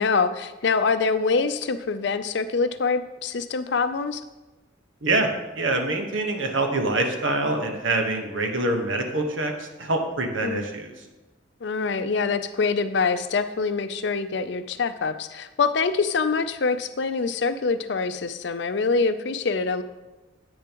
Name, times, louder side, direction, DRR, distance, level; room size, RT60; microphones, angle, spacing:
voice 1, 0.0-4.2 10.4-10.7 11.6-19.8, left 4 dB, 60° left, 11 dB, 0.5 m, -25 dB
voice 2, 5.6-10.9, right 2 dB, 80° right, 4 dB, 1.3 m, -25 dB
10.5 x 8.6 x 3.0 m, 1.2 s
head